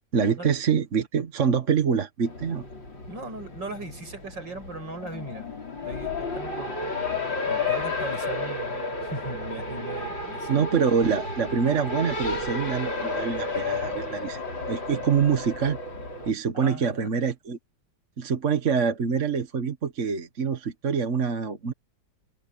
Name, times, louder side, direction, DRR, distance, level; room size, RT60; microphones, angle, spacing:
voice 1, 0.1-2.6 10.5-14.4 14.7-15.8 16.2-17.6 18.2-21.7, right 6 dB, 45° right, 1.5 m, -25 dB
Race car auto racing, 2.3-16.3, left 3 dB, 75° left, 6.9 m, -32 dB
voice 2, 3.1-5.5 5.8-6.8 7.5-10.7 16.5-17.1, right 2 dB, 75° right, 7.5 m, -38 dB
omnidirectional pair, 2.0 m